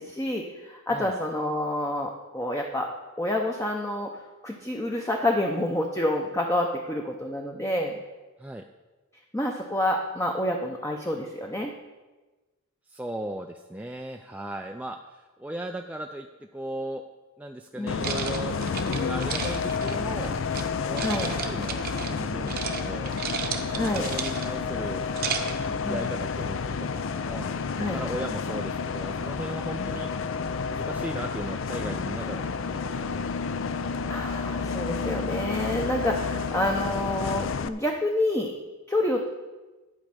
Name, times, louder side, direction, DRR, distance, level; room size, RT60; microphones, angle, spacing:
voice 1, 0.0-2.9 3.2-4.1 4.4-7.9 9.3-11.7 17.8-18.2 21.0-21.3 23.7-24.1 25.8-26.2 27.8-28.0 29.8-30.0 34.1-38.5 38.9-39.3, left 1 dB, 15° left, 1 dB, 0.7 m, -28 dB
voice 2, 12.9-16.3 16.5-17.0 17.4-20.3 20.9-23.1 23.6-25.1 25.6-27.5 27.8-30.1 30.7-33.3, right 1 dB, 5° right, 3 dB, 0.3 m, -37 dB
Bus, 17.9-37.7, left 5 dB, 60° left, 0.4 m, -30 dB
sound 1, 18.0-20.6 21.0-22.2 22.5-22.8 23.1-24.6 25.0-25.6, right 6 dB, 45° right, 0.9 m, -33 dB
12.0 x 5.3 x 7.7 m, 1.2 s
head